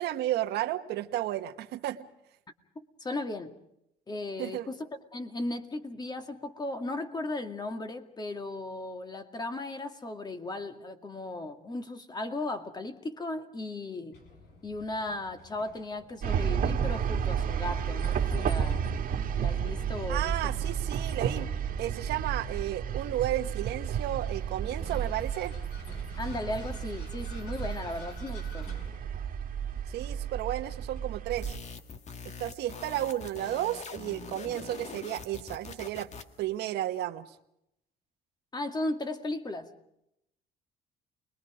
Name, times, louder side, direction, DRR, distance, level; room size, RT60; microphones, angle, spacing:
voice 1, 0.0-2.1 4.4-4.7 20.1-21.5 21.8-25.6 29.9-31.5 32.2-36.1 36.4-37.4, right 13 dB, 75° right, 1.5 m, -33 dB
voice 2, 2.8-3.6 4.1-14.2 14.6-18.8 19.3-20.4 26.2-28.7 38.5-39.7, left 2 dB, 25° left, 2.2 m, -36 dB
Vehicle, 14.1-32.2, left 3 dB, 75° left, 6.7 m, -52 dB
sound 1, 16.2-31.6, right 7 dB, 55° right, 1.9 m, -32 dB
sound 2, 31.4-36.4, left 5 dB, 40° left, 1.8 m, -44 dB
29.5 x 21.5 x 5.1 m
cardioid pair, 110°, 17 cm